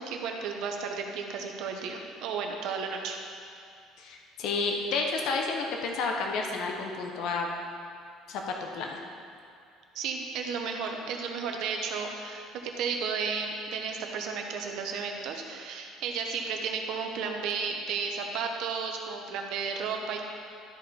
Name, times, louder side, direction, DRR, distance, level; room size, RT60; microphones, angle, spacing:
voice 1, 0.0-3.2 9.9-20.2, right 5 dB, 55° right, 3 dB, 0.9 m, -33 dB
voice 2, 4.0-7.5 8.3-9.0, left 4 dB, 50° left, 1 dB, 0.8 m, -31 dB
12.5 x 4.9 x 4.3 m, 2.4 s
cardioid pair, 180°, 0 cm